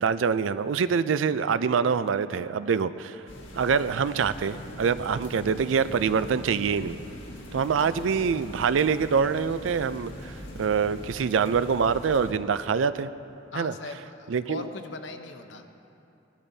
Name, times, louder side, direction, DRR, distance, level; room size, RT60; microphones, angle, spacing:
voice 1, 0.0-3.2 3.5-7.0 7.5-13.1 13.6-13.7 14.3-14.6, right 6 dB, 80° right, 14 dB, 0.4 m, -25 dB
sound 1, 3.3-12.3, equal, 80° left, 1.6 m, -42 dB
voice 2, 13.5-15.6, left 3 dB, 65° left, 6 dB, 0.8 m, -39 dB
18.0 x 12.0 x 2.7 m, 2.7 s
head